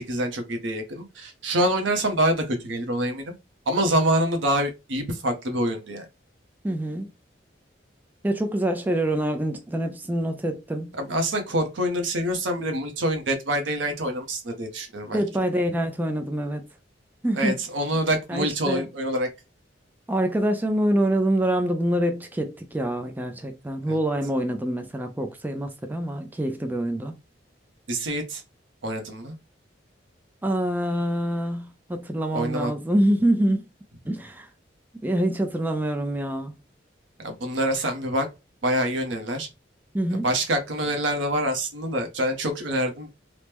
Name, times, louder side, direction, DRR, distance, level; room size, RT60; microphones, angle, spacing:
voice 1, 0.0-3.3 3.7-6.1 11.0-15.2 17.3-19.3 27.9-28.4 28.8-29.3 32.3-32.7 37.2-38.3 38.6-39.5 40.1-43.1, right 1 dB, 85° right, 0.8 m, -26 dB
voice 2, 6.6-7.1 8.2-10.9 15.1-16.6 17.2-17.6 18.3-18.9 20.1-27.1 30.4-33.7 34.1-34.5 35.0-36.5 39.9-40.3, right 1 dB, 10° right, 0.4 m, -25 dB
3.0 x 2.0 x 3.4 m
head